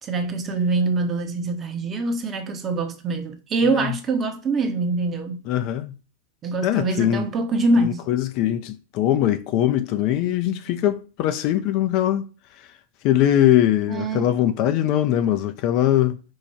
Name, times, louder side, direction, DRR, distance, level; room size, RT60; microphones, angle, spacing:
voice 1, 0.0-5.5 6.4-8.0 13.9-14.3, right 3 dB, 25° right, 0.7 m, -24 dB
voice 2, 5.5-5.9 6.6-7.3 7.8-12.2 13.0-16.2, left 12 dB, 40° left, 0.4 m, -21 dB
4.6 x 2.3 x 4.4 m
figure-of-eight pair, 90°, 0 cm